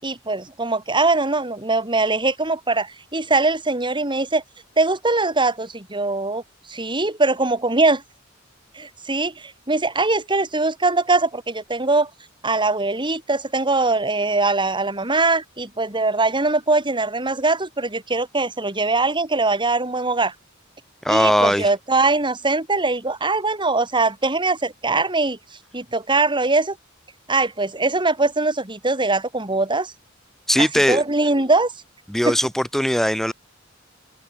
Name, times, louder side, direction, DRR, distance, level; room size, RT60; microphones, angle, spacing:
voice 1, 0.0-4.4 4.8-6.4 6.7-8.0 8.7-12.1 12.4-20.3 21.1-25.4 25.7-26.8 27.3-29.9 30.6-31.7 32.3-32.4, right 3 dB, 25° right, 5.8 m, -21 dB
voice 2, 21.0-21.7 30.5-31.0 32.1-33.3, equal, ahead, 2.8 m, -19 dB
head